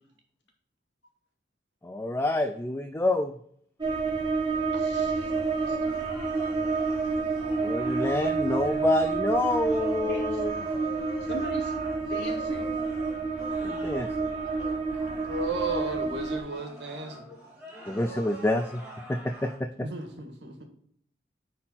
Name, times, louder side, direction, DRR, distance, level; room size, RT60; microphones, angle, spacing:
voice 1, 1.8-3.3 7.6-10.5 13.6-14.1 17.9-18.8 19.1-19.7, left 2 dB, 15° left, 7 dB, 0.5 m, -27 dB
sound 1, 3.8-16.4, right 4 dB, 25° right, 1.7 m, -29 dB
voice 2, 4.7-5.4 5.7-6.1 10.1-10.4 11.2-11.7 12.0-12.8, left 1 dB, 70° left, 1 dB, 2.2 m, -40 dB
sound 2, 5.1-19.6, equal, 5° right, 2.8 m, -45 dB
voice 3, 15.2-17.3 19.8-20.6, right 3 dB, 75° right, 3 dB, 1.9 m, -34 dB
9.7 x 4.4 x 4.0 m, 0.64 s
head